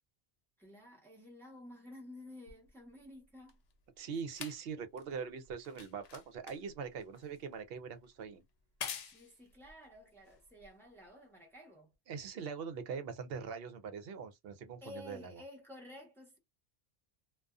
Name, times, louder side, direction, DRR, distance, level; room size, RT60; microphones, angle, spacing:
voice 1, 0.6-3.6 9.0-11.9 14.8-16.4, left 1 dB, ahead, 0.9 m, -52 dB
sound 1, 2.5-11.1 11.9-12.0, left 7 dB, 75° left, 0.8 m, -49 dB
voice 2, 4.0-8.4 12.1-15.4, right 6 dB, 65° right, 0.8 m, -42 dB
2.5 x 2.3 x 2.3 m
omnidirectional pair, 1.1 m